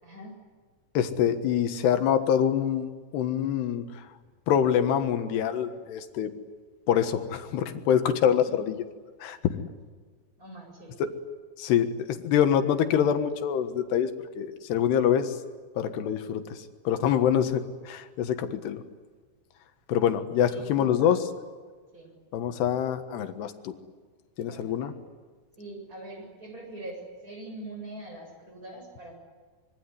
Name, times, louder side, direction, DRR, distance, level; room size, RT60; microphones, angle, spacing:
voice 1, 0.0-0.4 8.4-8.5 10.4-11.1 20.5-21.3 21.9-22.1 24.4-25.0 25.6-29.1, right 2 dB, 20° right, 2 dB, 7.8 m, -42 dB
voice 2, 1.0-2.9 3.1-3.9 4.5-6.3 6.9-8.8 9.2-9.4 11.0-11.1 11.6-14.1 14.4-15.4 15.8-18.8 19.9-21.2 22.3-23.7 24.4-24.9, left 9 dB, 90° left, 8 dB, 3.6 m, -25 dB
25.5 x 23.5 x 9.8 m, 1.5 s
omnidirectional pair, 4.6 m